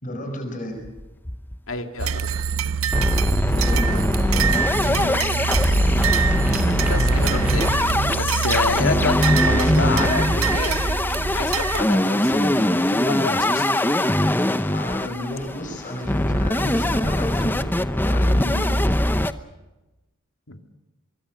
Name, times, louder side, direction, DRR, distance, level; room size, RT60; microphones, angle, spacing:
voice 1, 0.0-0.9 3.5-5.5 14.7-17.7 18.1-18.9, left 1 dB, 40° left, 5 dB, 6.1 m, -32 dB
sound 1, 0.8-1.7 2.1-2.2 2.4-2.5 2.9-19.3, left 1 dB, 10° left, 0.8 m, -21 dB
voice 2, 1.7-2.5 6.5-10.8 11.3-13.8 20.5-20.7, left 3 dB, 70° left, 6 dB, 2.3 m, -29 dB
sound 2, 2.0-11.8, right 6 dB, 85° right, 0.7 m, -25 dB
sound 3, 3.1-13.0, right 1 dB, 5° right, 1.7 m, -44 dB
23.5 x 23.5 x 6.4 m, 1.1 s
head